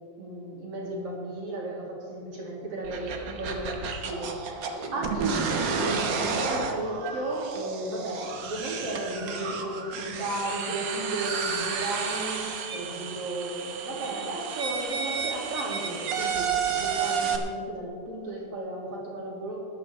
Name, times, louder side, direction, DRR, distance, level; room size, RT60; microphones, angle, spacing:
voice 1, 0.2-4.7 4.9-19.7, right 2 dB, 50° right, -4 dB, 3.2 m, -34 dB
sound 1, 2.8-17.4, right 6 dB, 80° right, 1.0 m, -32 dB
20.5 x 10.5 x 3.2 m, 2.6 s
omnidirectional pair, 3.5 m